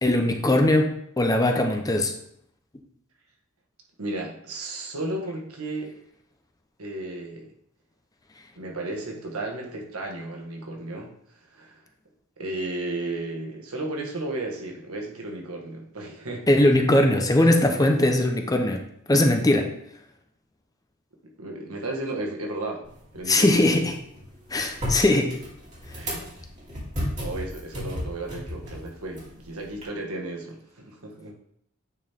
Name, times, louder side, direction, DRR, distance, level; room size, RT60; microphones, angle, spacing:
voice 1, 0.0-2.1 16.5-18.8 19.1-19.7 23.3-23.9 24.5-25.3, left 1 dB, 15° left, 4 dB, 0.7 m, -20 dB
voice 2, 4.0-5.9 6.8-7.5 8.5-11.1 11.5-11.8 12.4-16.5 17.4-17.5 17.8-18.1 21.4-22.8 23.1-23.7 25.9-26.2 27.2-31.3, right 2 dB, 90° right, 0 dB, 1.5 m, -34 dB
sound 1, 22.8-29.8, equal, 35° right, 2.9 m, -35 dB
9.1 x 4.4 x 3.5 m, 0.71 s
head